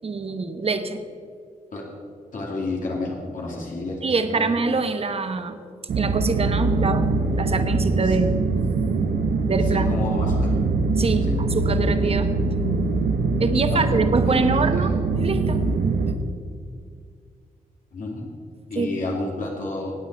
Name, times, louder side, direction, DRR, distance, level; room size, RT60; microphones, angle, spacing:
voice 1, 0.0-1.0 4.0-5.6 5.9-8.4 9.5-9.9 11.0-12.3 13.4-15.6 18.8-18.9, right 3 dB, 45° right, 9 dB, 1.1 m, -24 dB
voice 2, 2.3-4.5 8.0-8.2 9.7-10.5 11.2-11.4 13.7-14.0 14.3-14.9 17.9-18.3 18.7-19.9, left 2 dB, 65° left, -3 dB, 2.8 m, -31 dB
sound 1, 5.9-16.1, right 3 dB, 80° right, 1.0 m, -22 dB
16.5 x 9.1 x 4.7 m, 2.2 s
cardioid pair, 75°, 15 cm